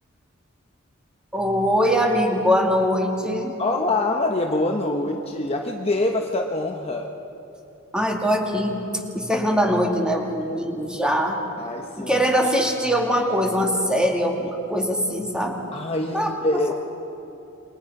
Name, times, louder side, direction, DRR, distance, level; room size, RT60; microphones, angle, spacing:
voice 1, 1.3-3.5 7.9-8.8 9.1-11.4 12.0-15.6 16.1-16.7, equal, 5° right, 0 dB, 2.5 m, -22 dB
voice 2, 3.6-7.1 11.6-12.3 15.7-16.7, left 2 dB, 30° left, 2 dB, 1.1 m, -25 dB
28.5 x 23.0 x 5.6 m, 3.0 s
head